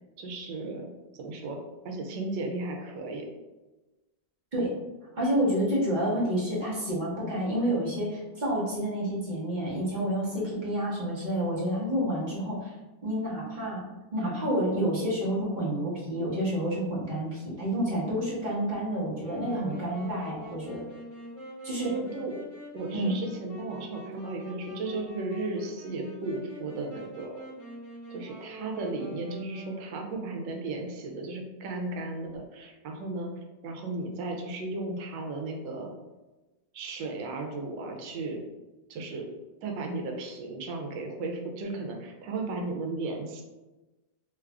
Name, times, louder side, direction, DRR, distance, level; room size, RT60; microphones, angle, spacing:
voice 1, 0.2-0.9 1.2-1.6 1.8-3.3 21.8-22.3 22.7-27.3 28.1-33.3 33.6-35.9 36.7-38.4 38.9-39.3 39.6-43.4, right 2 dB, 80° right, 2 dB, 1.3 m, -35 dB
voice 2, 5.1-12.7 13.0-13.8 14.1-20.8 21.6-21.9 22.9-23.2, equal, 35° right, -6 dB, 0.8 m, -29 dB
Wind instrument woodwind instrument, 19.2-30.1, right 1 dB, 10° left, 1.1 m, -45 dB
3.1 x 2.4 x 3.4 m, 1.1 s
omnidirectional pair, 1.9 m